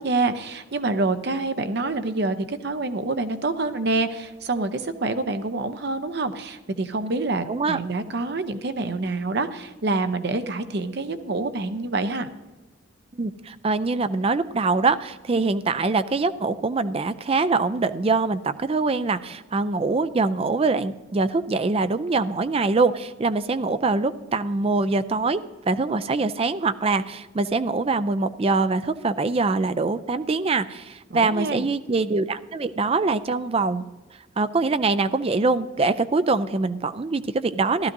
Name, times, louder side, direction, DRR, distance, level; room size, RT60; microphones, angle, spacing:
voice 1, 0.0-12.3 31.1-31.7, right 3 dB, 55° right, 8 dB, 0.7 m, -27 dB
voice 2, 7.5-7.8 13.1-33.9 34.4-37.9, right 3 dB, 30° right, 12 dB, 0.4 m, -24 dB
15.5 x 12.0 x 2.6 m, 1.2 s
head